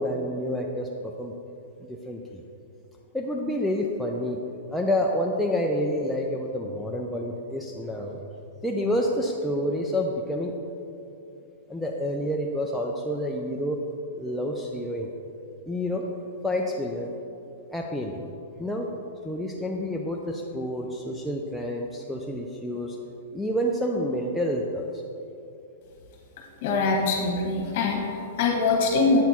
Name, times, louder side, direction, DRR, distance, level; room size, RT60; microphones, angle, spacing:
voice 1, 0.0-1.3 1.9-2.4 3.1-4.4 4.7-8.2 8.6-10.5 11.7-13.8 14.1-15.1 15.7-16.0 16.4-17.1 17.7-18.3 18.6-18.9 19.2-23.0 23.3-25.0, left 1 dB, ahead, -2 dB, 0.3 m, -28 dB
voice 2, 26.6-29.2, left 3 dB, 45° left, -1 dB, 1.4 m, -23 dB
8.0 x 4.4 x 4.3 m, 2.7 s
supercardioid pair, 165°, 0 cm